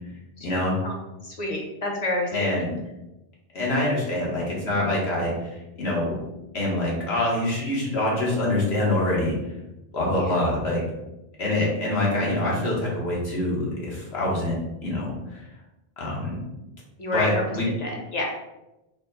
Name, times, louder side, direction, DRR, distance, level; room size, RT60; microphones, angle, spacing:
voice 1, 0.4-0.8 2.3-2.7 3.5-6.2 6.5-9.3 9.9-10.8 11.4-14.5 14.8-15.4 16.0-16.4 17.1-17.7, left 1 dB, 80° left, -4 dB, 1.5 m, -25 dB
voice 2, 1.2-2.5 10.1-10.4 17.0-17.4 17.8-18.2, left 2 dB, 40° left, 0 dB, 0.9 m, -29 dB
4.1 x 2.1 x 3.9 m, 0.97 s
omnidirectional pair, 1.1 m